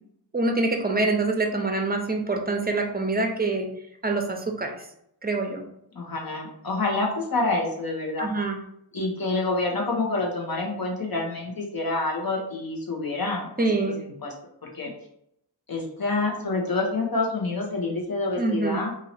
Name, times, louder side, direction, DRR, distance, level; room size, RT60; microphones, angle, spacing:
voice 1, 0.3-3.7 4.0-4.7 5.2-5.6 8.2-8.6 13.6-14.0 18.4-18.8, right 3 dB, 20° right, 3 dB, 0.7 m, -25 dB
voice 2, 5.9-8.3 8.9-13.7 14.0-14.3 14.6-14.9 15.7-18.9, left 3 dB, 55° left, -1 dB, 1.2 m, -27 dB
2.8 x 2.8 x 4.3 m, 0.75 s
wide cardioid pair, 55°, 43 cm